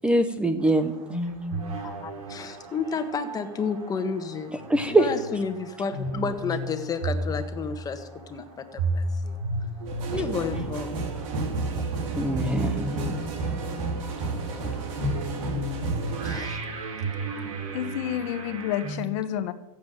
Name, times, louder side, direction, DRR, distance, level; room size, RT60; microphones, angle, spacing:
voice 1, 0.0-1.2 4.7-5.1 12.1-13.3, right 1 dB, 5° right, 10 dB, 0.8 m, -23 dB
sound 1, 0.6-19.0, right 1 dB, 80° right, 3.8 m, -34 dB
voice 2, 1.8-4.6 4.9-9.4 10.1-11.0 16.2-16.6, left 5 dB, 20° left, 7 dB, 1.6 m, -31 dB
sound 2, 9.9-16.4, right 3 dB, 65° right, 4.3 m, -31 dB
voice 3, 17.7-19.5, left 11 dB, 60° left, 11 dB, 1.2 m, -29 dB
15.0 x 7.6 x 9.3 m, 0.95 s
supercardioid pair, 135°, 18 cm